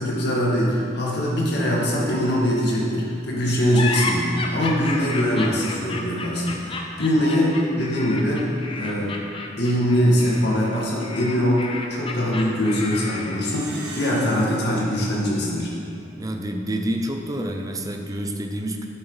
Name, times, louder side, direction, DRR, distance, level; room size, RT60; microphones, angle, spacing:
voice 1, 0.0-8.4 8.8-9.1 9.6-15.7, equal, 60° left, -4 dB, 2.1 m, -22 dB
sound 1, 3.7-13.6, left 3 dB, 30° left, 0.8 m, -32 dB
Plucked string instrument, 13.4-16.2, right 1 dB, 65° right, 1.8 m, -40 dB
voice 2, 16.2-18.9, right 1 dB, 20° right, 3 dB, 0.6 m, -28 dB
10.5 x 7.9 x 4.0 m, 2.5 s
head